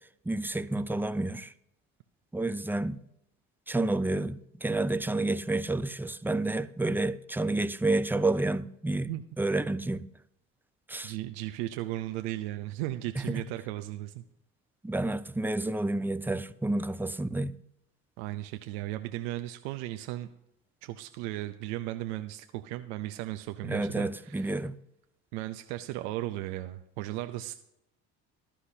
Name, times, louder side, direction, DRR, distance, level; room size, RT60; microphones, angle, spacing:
voice 1, 0.3-1.5 2.3-3.0 3.7-9.1 9.4-10.1 10.9-11.1 13.2-13.4 14.8-17.6 23.6-24.8, right 2 dB, 5° right, 0.6 m, -29 dB
voice 2, 11.0-14.2 18.2-20.3 20.8-24.6 25.3-27.5, right 15 dB, 85° right, 0.7 m, -36 dB
14.5 x 11.5 x 2.8 m
supercardioid pair, 75°, 33 cm